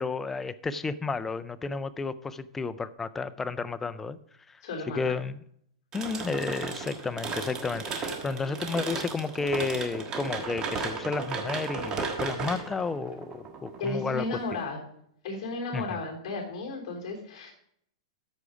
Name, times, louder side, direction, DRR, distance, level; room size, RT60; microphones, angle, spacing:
voice 1, 0.0-4.2 4.5-4.6 4.9-5.4 5.9-14.3 15.7-15.8, left 4 dB, 10° left, 12 dB, 0.3 m, -32 dB
voice 2, 4.6-5.1 13.8-14.8 15.2-17.5, left 3 dB, 50° left, -1 dB, 3.5 m, -34 dB
sound 1, 5.9-14.6, right 4 dB, 20° right, 1.3 m, -35 dB
13.5 x 4.8 x 5.1 m, 0.69 s
supercardioid pair, 155°, 3 cm